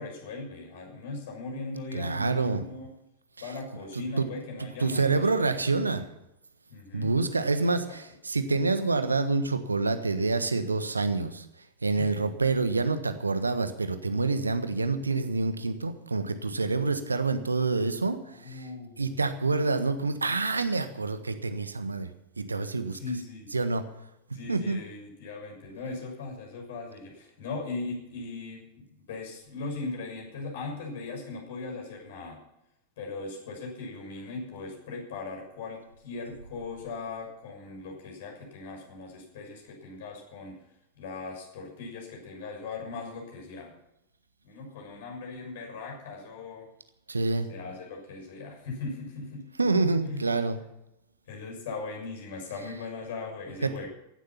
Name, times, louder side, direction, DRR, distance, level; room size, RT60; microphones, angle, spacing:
voice 1, 0.0-2.9 3.4-5.6 6.7-7.1 7.6-8.0 11.9-12.2 18.2-19.2 22.9-23.5 24.3-32.4 33.0-40.6 40.9-43.7 44.4-46.7 47.5-49.5 50.0-50.2 51.3-53.9, left 3 dB, 55° left, 1 dB, 6.5 m, -39 dB
voice 2, 1.9-2.6 3.9-4.3 4.6-6.0 6.9-11.4 11.8-18.2 18.5-18.6 19.0-23.0 23.5-23.8 24.5-24.8 47.1-47.5 49.6-50.6 53.6-53.7, right 3 dB, 80° right, 10 dB, 1.4 m, -27 dB
16.0 x 12.0 x 5.8 m, 0.84 s
figure-of-eight pair, 90°, 0 cm